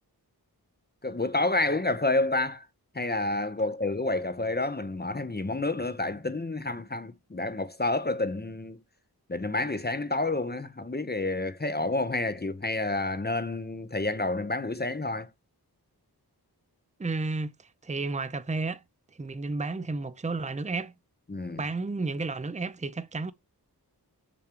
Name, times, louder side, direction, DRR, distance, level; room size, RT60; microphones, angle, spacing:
voice 1, 1.0-2.6 2.9-8.8 9.3-15.3 21.3-21.6, left 2 dB, 25° left, 0.8 m, -29 dB
voice 2, 17.0-18.8 19.1-20.9 21.6-23.3, right 3 dB, 20° right, 0.6 m, -32 dB
7.1 x 4.7 x 2.9 m
wide cardioid pair, 55°, 39 cm